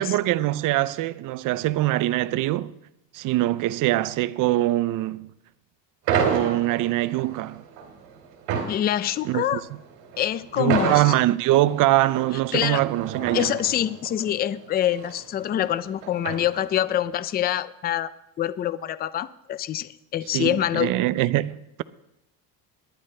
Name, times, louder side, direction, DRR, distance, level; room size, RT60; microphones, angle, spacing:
voice 1, 0.0-2.7 3.1-5.3 6.2-7.6 9.2-9.6 10.6-13.5 20.3-21.8, right 16 dB, 50° right, 0.5 m, -23 dB
sound 1, 6.1-17.0, right 6 dB, 85° right, 2.7 m, -31 dB
voice 2, 8.7-9.6 10.2-11.1 12.5-12.8 13.3-18.1 18.4-20.9, left 11 dB, 25° left, 0.3 m, -25 dB
19.0 x 11.0 x 3.3 m
cardioid pair, 140°, 41 cm